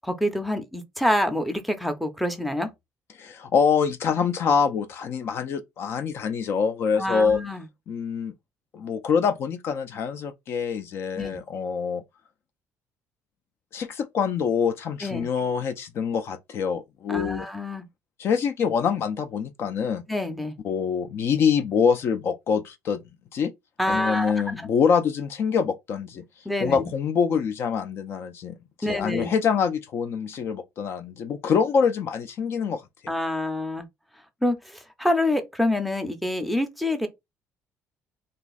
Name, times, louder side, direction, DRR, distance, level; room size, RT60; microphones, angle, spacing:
voice 1, 0.0-2.7 7.0-7.6 11.1-11.4 15.0-15.3 17.1-17.9 20.1-20.5 23.8-24.6 26.5-26.9 28.8-29.3 33.1-33.9 34.4-37.1, left 1 dB, ahead, 0.5 m, -27 dB
voice 2, 3.2-7.4 7.9-8.3 8.7-12.0 13.7-17.5 18.2-20.0 20.6-23.0 23.3-23.5 23.9-26.2 26.6-32.8, left 6 dB, 50° left, 0.4 m, -25 dB
2.5 x 2.3 x 3.9 m
cardioid pair, 140°, 5 cm